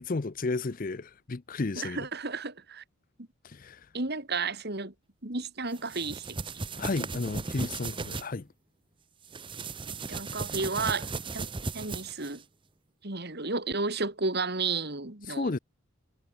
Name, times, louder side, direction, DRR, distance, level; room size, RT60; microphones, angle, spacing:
voice 1, 0.0-2.1 3.4-3.9 6.8-8.5 15.3-15.6, left 3 dB, 40° left, 0.6 m, -33 dB
voice 2, 1.8-2.8 3.9-4.9 5.2-6.6 10.1-11.1 11.3-11.5 11.7-12.4 13.0-15.5, right 3 dB, 45° right, 2.5 m, -32 dB
sound 1, 5.7-8.3 9.2-12.4, right 3 dB, 20° right, 0.8 m, -36 dB
head